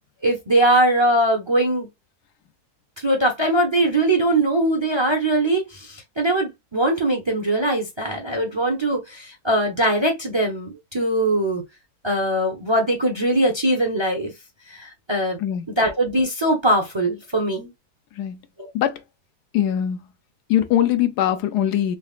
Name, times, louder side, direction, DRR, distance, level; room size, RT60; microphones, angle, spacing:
voice 1, 0.2-1.9 3.0-11.6 12.0-14.3 14.7-15.4 15.8-17.7 18.6-18.7, right 1 dB, 25° right, 0.7 m, -21 dB
voice 2, 19.5-20.0 20.5-22.0, left 11 dB, 90° left, 1.3 m, -21 dB
3.9 x 3.3 x 2.4 m
omnidirectional pair, 1.7 m